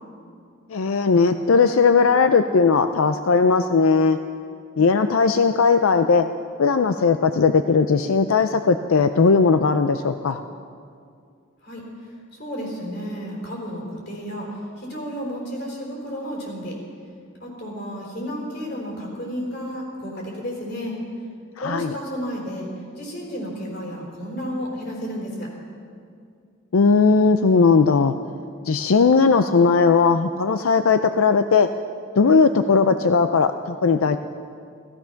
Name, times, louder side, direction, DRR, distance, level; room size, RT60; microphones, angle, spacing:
voice 1, 0.7-4.2 4.8-6.2 6.6-10.4 21.6-21.9 26.7-28.2 28.6-31.7 32.2-34.2, left 4 dB, 90° left, 9 dB, 0.5 m, -18 dB
voice 2, 12.3-14.5 14.8-16.7 17.4-20.9 21.6-22.7 23.0-25.5, equal, 50° left, -2 dB, 4.5 m, -32 dB
16.5 x 15.0 x 5.8 m, 2.3 s
head